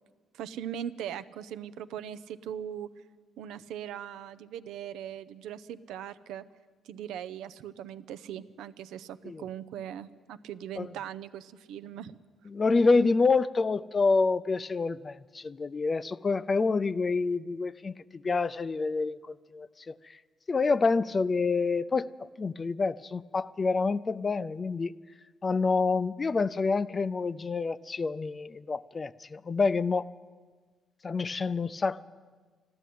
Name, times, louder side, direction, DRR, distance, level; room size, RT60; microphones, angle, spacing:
voice 1, 0.3-2.9 3.4-6.4 6.8-12.1, right 10 dB, 90° right, 12 dB, 0.5 m, -40 dB
voice 2, 12.5-19.9 20.5-24.9 25.4-30.1 31.0-32.0, left 4 dB, 35° left, 16 dB, 0.4 m, -27 dB
12.5 x 12.5 x 9.3 m, 1.5 s
cardioid pair, 90°, 0 cm